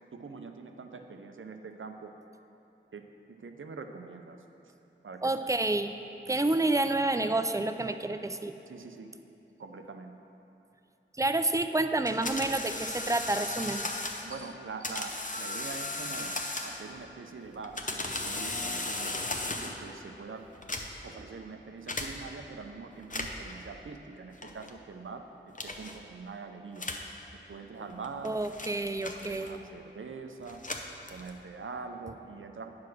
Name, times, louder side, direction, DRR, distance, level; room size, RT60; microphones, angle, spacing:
voice 1, 0.1-2.1 2.9-4.4 5.0-5.3 8.6-9.1 9.6-10.2 14.2-20.5 21.0-26.9 27.5-28.3 29.1-30.6 31.1-32.7, right 4 dB, 85° right, 6 dB, 0.5 m, -44 dB
voice 2, 5.2-5.9 6.3-8.6 11.2-13.9 28.2-29.6, right 2 dB, 15° right, 8 dB, 0.4 m, -29 dB
sound 1, 12.1-14.3 14.8-17.0 17.5-19.9 20.5-21.2 21.9-22.1 23.0-23.5 24.4-24.7 25.6-26.0 26.8-27.1 27.9-29.7 30.4-31.5, left 2 dB, 40° left, 0.7 m, -36 dB
9.3 x 4.9 x 6.0 m, 2.9 s
wide cardioid pair, 55°, 20 cm